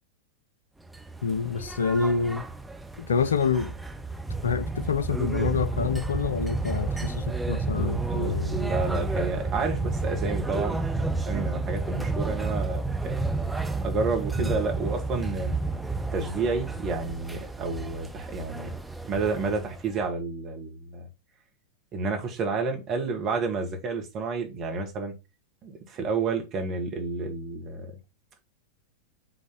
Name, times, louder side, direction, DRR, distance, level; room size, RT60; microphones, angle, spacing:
sound 1, 0.9-20.1, right 3 dB, 5° right, 0.8 m, -31 dB
voice 1, 1.2-2.5 3.0-3.7 4.4-8.6 14.4-14.5, left 5 dB, 70° left, 0.6 m, -27 dB
voice 2, 8.1-13.2 13.8-15.5 16.1-18.8 19.0-21.1 21.9-25.2 25.6-27.9, right 3 dB, 35° right, 2.1 m, -30 dB
6.3 x 3.8 x 5.4 m
figure-of-eight pair, 90°, 0 cm